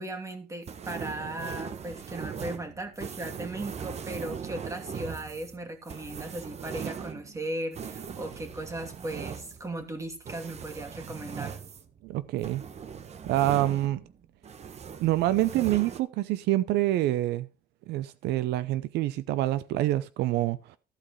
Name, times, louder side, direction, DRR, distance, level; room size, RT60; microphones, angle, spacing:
voice 1, 0.0-11.6, right 1 dB, 20° right, 2.6 m, -37 dB
sound 1, 0.6-14.2 14.4-16.0, right 7 dB, 40° right, 1.1 m, -40 dB
voice 2, 12.0-12.6 13.3-14.0 15.0-17.5 17.9-20.6, right 15 dB, 80° right, 0.7 m, -26 dB
14.5 x 4.9 x 5.6 m
cardioid pair, 110°, 17 cm